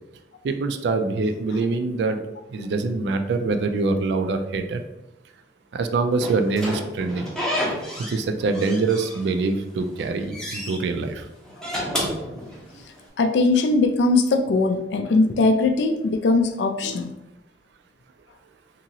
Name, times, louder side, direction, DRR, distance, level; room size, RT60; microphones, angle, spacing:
voice 1, 0.4-2.2 2.5-4.8 5.7-7.2 8.1-11.3, right 3 dB, 70° right, 7 dB, 0.3 m, -24 dB
Slam / Squeak, 6.2-8.2 8.5-9.5 9.9-10.8 11.5-13.0, equal, 5° left, 0.5 m, -30 dB
voice 2, 13.2-17.1, left 3 dB, 75° left, 6 dB, 0.3 m, -20 dB
2.8 x 2.7 x 2.7 m, 0.93 s
head